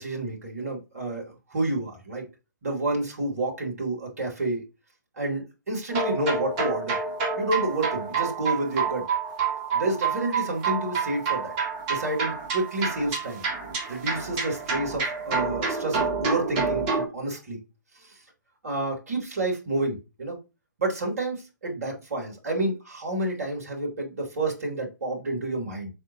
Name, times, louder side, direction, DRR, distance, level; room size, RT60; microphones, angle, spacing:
voice 1, 0.0-2.2 2.6-4.6 5.2-7.0 7.4-9.1 9.7-11.5 11.9-13.4 13.9-17.6 18.0-18.2 18.6-20.4 20.8-25.9, right 2 dB, 50° right, -1 dB, 3.7 m, -29 dB
sound 1, 5.9-17.0, right 5 dB, 25° right, 3.1 m, -28 dB
7.7 x 6.5 x 3.1 m, 0.28 s
figure-of-eight pair, 130°, 10 cm